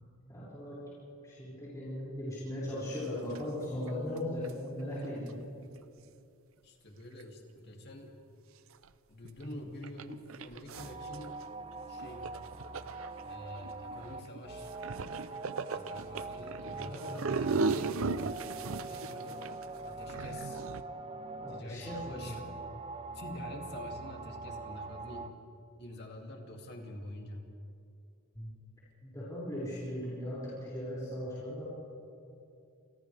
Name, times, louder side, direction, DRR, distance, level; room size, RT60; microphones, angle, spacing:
voice 1, 0.3-0.8 1.2-5.5 9.4-9.6 16.7-17.3 21.4-22.4 28.3-28.5 29.0-31.6, left 1 dB, 15° left, -10 dB, 6.1 m, -38 dB
sound 1, 2.8-3.0 3.3-3.4 3.7-3.9 4.2-5.3 7.2-7.3 8.8-8.9 9.2-9.4 9.8-11.4 12.0-20.8, right 4 dB, 70° right, 0.6 m, -37 dB
voice 2, 6.6-8.2 9.1-11.4 11.9-12.3 13.2-14.7 15.7-18.0 18.9-19.5 19.8-20.7 21.5-22.4 23.1-25.3 25.8-27.5, left 1 dB, 50° left, 1 dB, 2.7 m, -47 dB
sound 2, 10.7-25.3, right 3 dB, 25° right, 0.7 m, -43 dB
29.0 x 28.0 x 3.5 m, 2.6 s
head